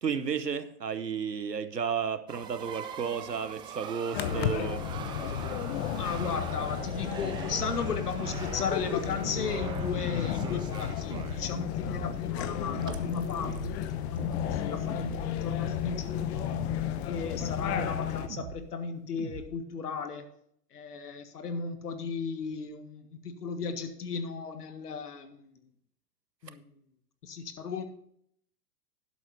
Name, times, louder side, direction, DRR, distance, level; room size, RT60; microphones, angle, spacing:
voice 1, 0.0-4.9, right 6 dB, 90° right, 13 dB, 1.0 m, -32 dB
sound 1, 2.3-11.5 12.4-12.5 12.8-14.9 15.6-15.7, right 8 dB, 10° right, 0.4 m, -42 dB
sound 2, 4.1-18.3, left 9 dB, 45° left, 1.0 m, -33 dB
voice 2, 5.9-16.6 17.0-20.3 20.7-25.5 26.4-26.8 27.2-27.8, left 5 dB, 70° left, 9 dB, 1.7 m, -36 dB
sound 3, 7.6-7.8 8.2-8.6 9.2-9.9 11.1-11.4 11.9-12.2 12.7-13.1 13.4-13.8 14.2-14.6 14.9-15.3 15.6-16.1 16.5-16.9 17.4-17.8 18.3-18.7 19.2-19.5, right 7 dB, 50° right, 1.3 m, -42 dB
12.0 x 11.0 x 2.7 m, 0.69 s
figure-of-eight pair, 105°, 47 cm